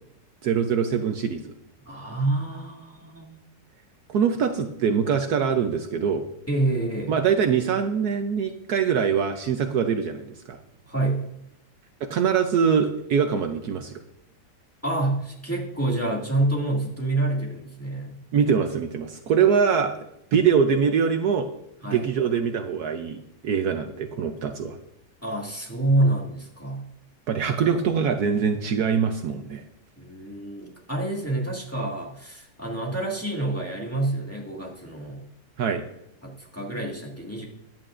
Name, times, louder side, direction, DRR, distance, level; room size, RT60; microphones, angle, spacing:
voice 1, 0.4-1.5 4.1-6.2 7.1-10.6 12.1-14.0 18.3-20.0 20.3-21.5 21.9-24.8 27.3-29.6 35.6-35.8, right 7 dB, 65° right, 6 dB, 1.2 m, -23 dB
voice 2, 1.9-3.4 6.5-7.2 10.9-11.2 14.8-18.2 21.8-22.1 25.2-26.8 30.0-35.2 36.2-37.5, right 2 dB, 10° left, -3 dB, 2.1 m, -27 dB
15.0 x 10.5 x 2.5 m, 0.79 s
omnidirectional pair, 1.9 m